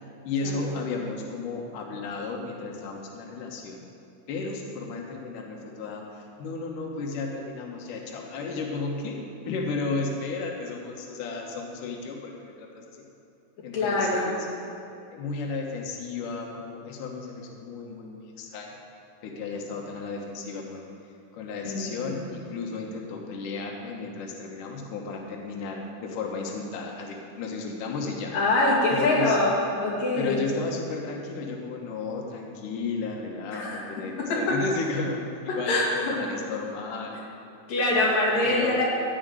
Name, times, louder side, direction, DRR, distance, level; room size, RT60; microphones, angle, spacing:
voice 1, 0.2-3.8 4.3-13.0 13.6-14.5 15.1-18.8 19.2-20.9 21.3-28.3 28.9-29.4 30.2-37.2 38.4-38.8, left 4 dB, 85° left, 0 dB, 1.8 m, -33 dB
voice 2, 13.7-14.3 21.6-22.2 28.3-29.6 29.8-30.4 33.5-33.8 34.2-34.6 35.5-36.2 37.7-38.8, left 2 dB, 50° left, -5 dB, 3.6 m, -24 dB
15.0 x 5.1 x 9.1 m, 2.8 s
omnidirectional pair, 5.6 m